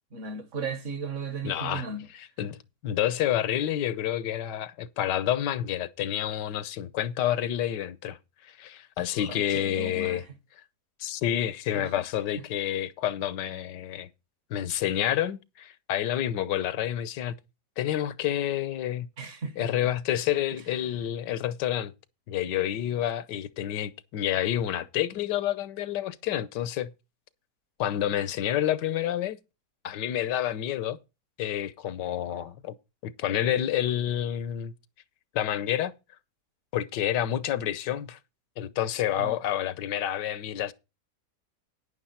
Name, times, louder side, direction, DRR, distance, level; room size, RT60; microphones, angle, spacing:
voice 1, 0.1-2.1 9.2-10.3 11.7-11.9 19.2-19.9 20.7-20.9 39.2-39.3, right 4 dB, 50° right, 1.5 m, -36 dB
voice 2, 1.4-1.9 2.1-2.6 2.8-8.2 8.4-10.2 11.0-14.1 14.5-17.3 17.8-19.1 19.6-21.9 22.3-26.9 27.8-29.4 29.8-31.0 31.4-32.7 33.0-34.7 35.3-35.9 36.7-38.2 38.6-40.7, left 11 dB, 85° left, 1.4 m, -29 dB
10.5 x 9.9 x 4.2 m
omnidirectional pair, 1.8 m